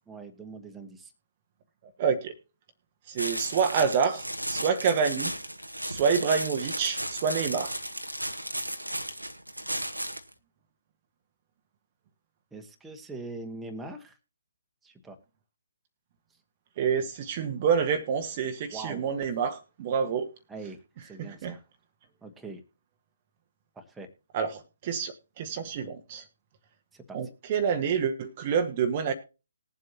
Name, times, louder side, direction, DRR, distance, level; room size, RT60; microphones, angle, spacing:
voice 1, 0.1-1.1 12.5-14.1 14.8-15.2 18.7-19.1 20.5-21.6 22.2-22.6 23.7-24.1 26.9-27.2, right 3 dB, 5° right, 1.4 m, -42 dB
voice 2, 2.0-2.3 3.1-5.3 5.8-7.8 16.8-20.3 21.2-21.6 24.3-26.2 27.1-29.1, right 6 dB, 30° right, 1.1 m, -27 dB
sound 1, 3.2-10.3, right 1 dB, 90° right, 1.2 m, -34 dB
20.0 x 7.6 x 2.8 m
figure-of-eight pair, 135°, 0 cm